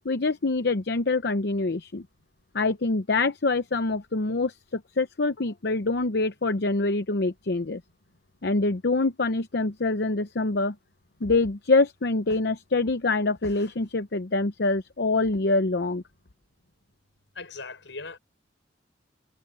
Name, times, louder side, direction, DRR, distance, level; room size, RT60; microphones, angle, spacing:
voice 1, 0.0-2.0 2.5-7.8 8.4-10.7 11.2-16.0, left 3 dB, 60° left, 0.8 m, -25 dB
voice 2, 17.4-18.2, left 3 dB, 80° left, 5.5 m, -39 dB
head